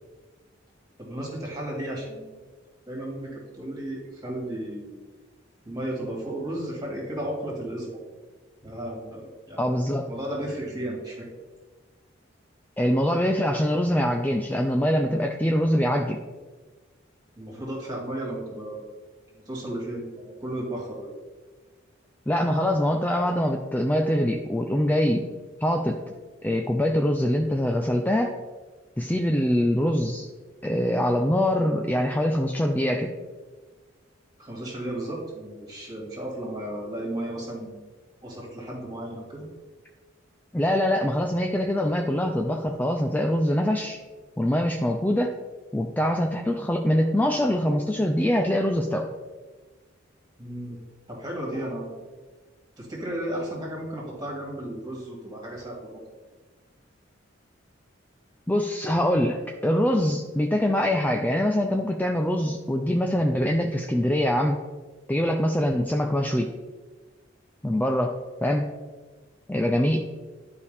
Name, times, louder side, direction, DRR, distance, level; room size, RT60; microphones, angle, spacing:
voice 1, 1.0-2.4 2.9-4.9 5.6-8.0 8.6-11.3 17.4-19.0 19.3-21.1 34.4-37.8 38.2-39.5 50.4-50.8 51.1-52.0 52.8-56.0, right 1 dB, 20° right, -3 dB, 2.4 m, -34 dB
voice 2, 9.6-10.1 12.8-16.2 22.3-25.3 25.6-26.1 26.4-28.4 29.0-30.3 30.6-33.1 40.5-44.0 44.4-45.3 45.7-49.1 58.5-64.6 65.1-66.5 67.6-68.7 69.5-70.0, equal, 10° left, 3 dB, 0.4 m, -24 dB
11.0 x 4.9 x 3.4 m, 1.3 s
head